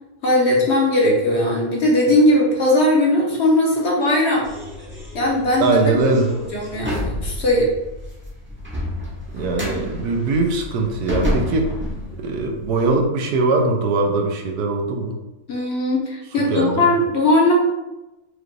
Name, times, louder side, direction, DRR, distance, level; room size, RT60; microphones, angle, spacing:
voice 1, 0.2-4.5 5.1-6.0 6.5-7.7 15.5-17.5, left 1 dB, 50° left, -3 dB, 1.1 m, -18 dB
sound 1, 4.4-13.0, left 1 dB, 15° right, 0.5 m, -30 dB
voice 2, 5.6-6.3 9.3-11.7 12.2-15.1 16.5-16.9, right 3 dB, 85° right, 2 dB, 1.2 m, -21 dB
5.0 x 2.5 x 3.2 m, 1.0 s
omnidirectional pair, 1.6 m